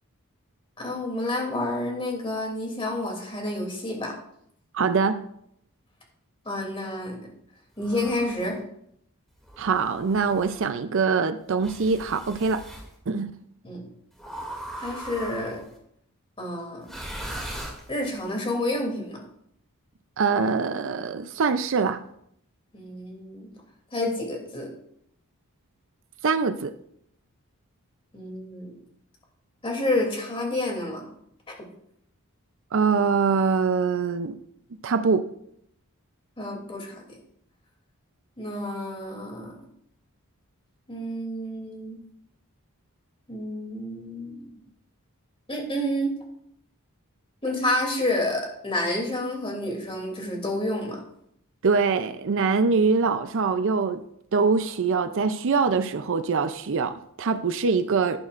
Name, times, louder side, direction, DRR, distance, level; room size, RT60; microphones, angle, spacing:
voice 1, 0.8-4.1 6.4-7.2 7.8-8.6 13.6-13.8 14.8-15.6 16.4-17.0 17.9-19.2 22.7-23.5 23.9-24.7 28.1-28.7 29.6-31.0 36.4-37.0 38.4-39.6 40.9-42.0 43.3-44.6 45.5-46.2 47.4-51.0, left 1 dB, 25° left, 2.8 m, -29 dB
voice 2, 4.7-5.3 9.6-12.6 13.1-13.3 20.2-22.0 26.2-26.7 32.7-34.4 34.8-35.3 51.6-54.0 54.3-58.2, right 5 dB, 60° right, 0.5 m, -23 dB
sound 1, 7.8-8.5 9.4-10.6 11.6-12.9 14.2-15.7 16.8-18.2, right 1 dB, ahead, 2.4 m, -39 dB
11.5 x 10.5 x 2.5 m
head